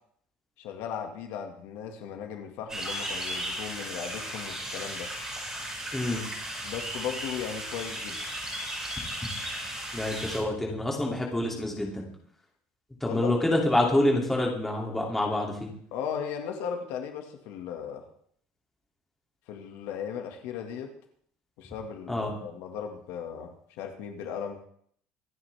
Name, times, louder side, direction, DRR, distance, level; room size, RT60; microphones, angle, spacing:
voice 1, 0.6-5.1 6.6-8.2 13.0-13.4 15.9-18.0 19.5-20.9 21.6-24.6, left 7 dB, 60° left, 4 dB, 2.0 m, -37 dB
sound 1, 2.7-10.4, right 1 dB, 15° right, 6.7 m, -35 dB
voice 2, 5.9-6.2 9.9-12.0 13.0-15.7 22.1-22.3, left 1 dB, 5° left, -1 dB, 2.9 m, -27 dB
26.0 x 9.9 x 3.6 m, 0.64 s
cardioid pair, 175°, 5 cm